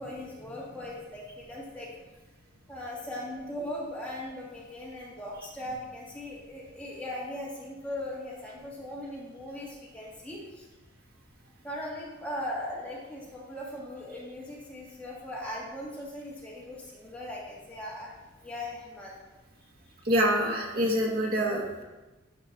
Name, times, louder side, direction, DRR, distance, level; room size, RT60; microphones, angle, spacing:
voice 1, 0.0-1.9 2.7-10.7 11.6-18.1 18.4-19.2, left 1 dB, 5° left, -5 dB, 1.8 m, -39 dB
voice 2, 20.0-21.8, equal, 45° right, -1 dB, 1.5 m, -26 dB
12.0 x 5.2 x 4.1 m, 1.1 s
head